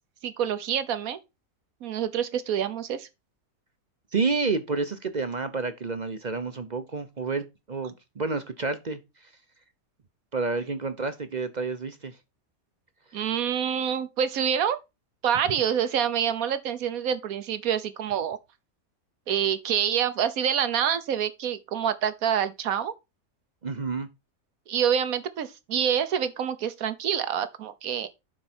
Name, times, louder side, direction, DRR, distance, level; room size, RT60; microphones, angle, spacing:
voice 1, 0.2-1.2 1.8-3.1 13.1-14.8 15.2-18.4 19.3-22.9 24.7-28.1, right 8 dB, 75° right, 1.4 m, -27 dB
voice 2, 4.1-9.0 10.3-12.1 23.6-24.1, right 4 dB, 40° right, 0.7 m, -29 dB
11.0 x 4.6 x 4.3 m
omnidirectional pair, 1.5 m